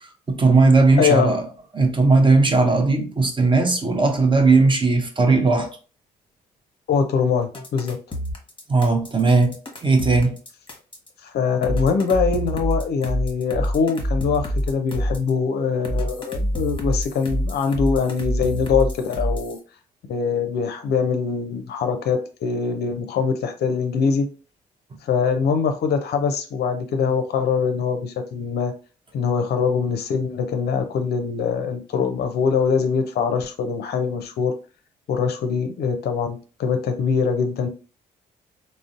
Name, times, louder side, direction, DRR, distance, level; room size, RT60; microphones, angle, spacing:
voice 1, 0.3-1.4 1.7-5.7 8.7-9.6 9.8-10.4, right 3 dB, 25° right, 0.7 m, -17 dB
voice 2, 1.0-1.4 6.9-8.0 11.2-19.6 20.1-24.3 25.0-28.7 29.1-34.5 35.1-37.7, left 6 dB, 50° left, 0.5 m, -23 dB
sound 1, 7.5-11.1 11.6-15.3 15.8-19.6, equal, 25° left, 0.9 m, -26 dB
3.6 x 2.0 x 2.5 m
figure-of-eight pair, 45°, 21 cm